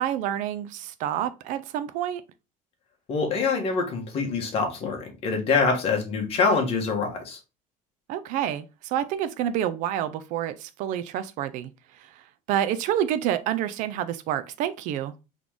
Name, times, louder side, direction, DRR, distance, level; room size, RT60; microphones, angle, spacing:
voice 1, 0.0-2.2 8.1-12.2 12.5-15.1, right 11 dB, 55° right, 0.4 m, -28 dB
voice 2, 3.1-7.4, left 4 dB, 40° left, 1.3 m, -25 dB
4.0 x 3.1 x 3.5 m
cardioid pair, 165°, 15 cm